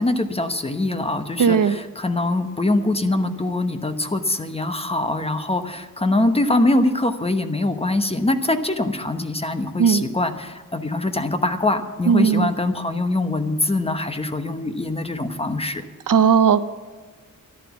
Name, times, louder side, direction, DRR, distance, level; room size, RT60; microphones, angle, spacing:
voice 1, 0.0-15.8, left 2 dB, 15° left, 8 dB, 1.0 m, -23 dB
voice 2, 1.4-1.8 9.8-10.0 12.1-12.5 16.1-16.6, right 7 dB, 70° right, 13 dB, 0.7 m, -16 dB
12.5 x 11.0 x 7.1 m, 1.4 s
wide cardioid pair, 135°, 34 cm